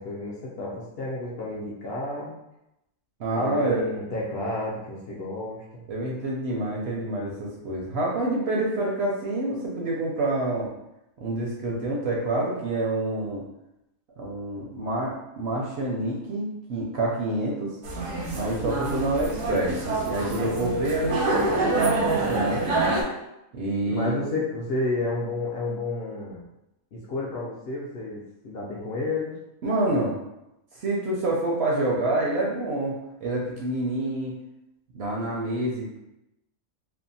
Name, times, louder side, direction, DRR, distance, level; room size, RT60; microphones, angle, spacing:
voice 1, 0.0-2.3 3.3-5.9 23.8-26.4 26.9-29.4, left 2 dB, 65° left, -5 dB, 0.7 m, -31 dB
voice 2, 3.2-3.9 5.9-10.7 11.2-13.4 14.2-17.8 18.3-22.6 23.5-24.2 29.6-30.2 30.7-34.4 34.9-36.0, right 2 dB, 65° right, -3 dB, 0.7 m, -27 dB
sound 1, 17.8-23.0, right 2 dB, 85° right, 1.1 m, -26 dB
2.7 x 2.1 x 2.6 m, 0.88 s
omnidirectional pair, 1.4 m